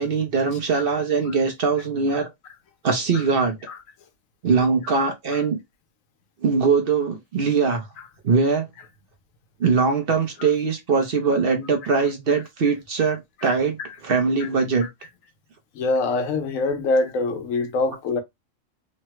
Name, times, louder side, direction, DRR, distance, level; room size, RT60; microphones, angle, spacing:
voice 1, 0.0-2.3 2.8-3.6 4.4-5.6 6.4-7.9 8.2-8.7 9.6-13.8 14.0-14.9, right 5 dB, 55° right, 0.7 m, -21 dB
voice 2, 15.7-18.2, left 3 dB, 85° left, 1.1 m, -24 dB
3.2 x 2.1 x 2.8 m
omnidirectional pair, 1.4 m